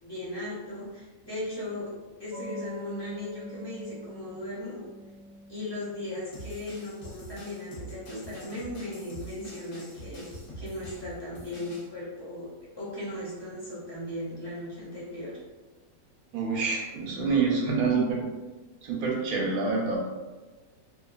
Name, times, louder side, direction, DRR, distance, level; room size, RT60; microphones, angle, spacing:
voice 1, 0.0-1.9 2.2-4.8 5.5-15.3, left 1 dB, 30° left, -10 dB, 0.4 m, -37 dB
sound 1, 2.3-8.5, equal, 65° right, 0.3 m, -46 dB
sound 2, 6.3-11.9, right 1 dB, 65° left, 1.1 m, -45 dB
voice 2, 16.3-18.2 18.8-20.1, right 4 dB, 85° right, -1 dB, 1.1 m, -27 dB
2.7 x 2.3 x 2.3 m, 1.2 s
omnidirectional pair, 1.5 m